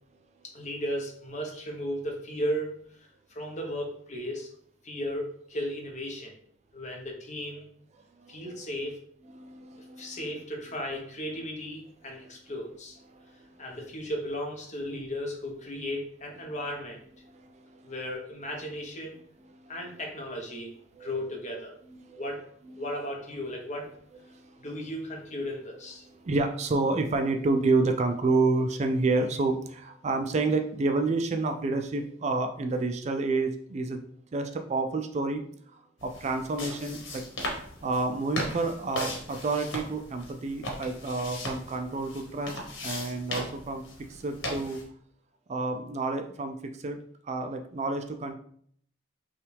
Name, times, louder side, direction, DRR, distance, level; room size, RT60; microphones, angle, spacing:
voice 1, 0.5-4.5 4.8-6.3 6.7-7.6 8.3-8.9 10.0-13.0 13.6-17.0 17.8-19.2 19.7-20.7 21.0-21.7 22.2-22.4 22.8-23.9 24.6-26.0, equal, 40° left, 1 dB, 1.0 m, -35 dB
voice 2, 8.2-8.7 9.3-10.3 12.2-12.3 13.1-13.7 17.2-17.9 19.5-19.7 21.0-21.3 21.9-22.3 22.7-22.8 24.3-24.7 26.0-34.0 34.3-35.5 35.7-37.2 37.8-43.8 44.1-44.8 45.5-47.0 47.2-48.3, right 3 dB, 35° right, 6 dB, 0.3 m, -29 dB
sound 1, 36.0-44.8, left 1 dB, 85° left, 1.1 m, -38 dB
5.6 x 2.4 x 3.3 m, 0.62 s
head